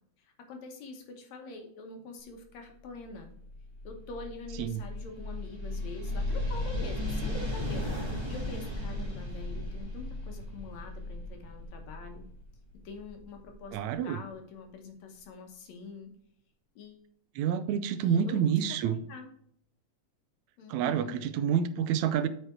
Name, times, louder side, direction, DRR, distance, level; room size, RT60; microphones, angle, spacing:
voice 1, 0.2-3.3 3.8-8.0 8.3-12.2 12.8-13.8 14.0-16.1 16.8-17.0 18.0-19.3 20.6-21.2, left 3 dB, 70° left, 4 dB, 2.2 m, -45 dB
sound 1, 2.9-13.7, left 1 dB, 20° right, 0.7 m, -36 dB
voice 2, 13.7-14.2 17.4-19.0 20.7-22.3, right 8 dB, 80° right, 11 dB, 1.9 m, -28 dB
8.2 x 4.9 x 4.4 m, 0.66 s
omnidirectional pair, 3.4 m